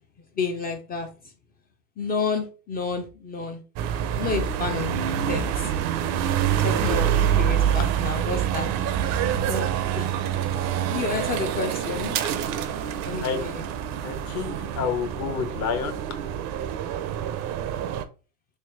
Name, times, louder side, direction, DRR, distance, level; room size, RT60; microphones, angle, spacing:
voice 1, 0.4-1.1 2.0-3.6 4.1-4.9 5.3-5.7 6.6-8.7 9.5-9.7 10.0-10.1 10.9-12.2 13.0-13.7, left 4 dB, 20° left, 0.4 m, -30 dB
sound 1, 3.8-18.0, right 9 dB, 40° right, 0.5 m, -26 dB
voice 2, 14.0-15.9, left 6 dB, 40° left, 0.9 m, -29 dB
3.3 x 3.1 x 3.0 m
hypercardioid pair, 105°, 45 cm